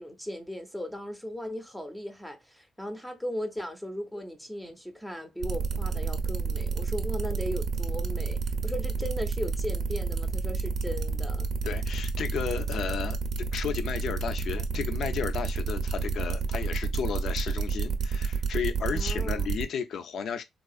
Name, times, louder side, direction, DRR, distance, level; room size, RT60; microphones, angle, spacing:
voice 1, 0.0-11.5 18.9-19.6, equal, 5° left, 0.6 m, -37 dB
sound 1, 5.4-19.6, right 5 dB, 65° right, 0.6 m, -30 dB
voice 2, 11.6-20.4, left 7 dB, 65° left, 0.5 m, -33 dB
3.6 x 2.4 x 2.3 m
cardioid pair, 90°, 0 cm